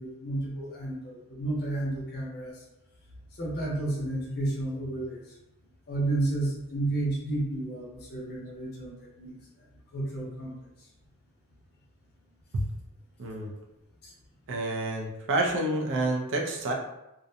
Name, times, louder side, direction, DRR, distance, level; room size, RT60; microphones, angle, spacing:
voice 1, 0.0-2.6 3.4-5.2 5.9-9.3 9.9-10.5, right 2 dB, 45° left, -4 dB, 0.6 m, -31 dB
voice 2, 13.2-13.5 14.5-16.7, right 1 dB, 60° right, 1 dB, 0.5 m, -28 dB
2.5 x 2.1 x 2.6 m, 0.89 s
head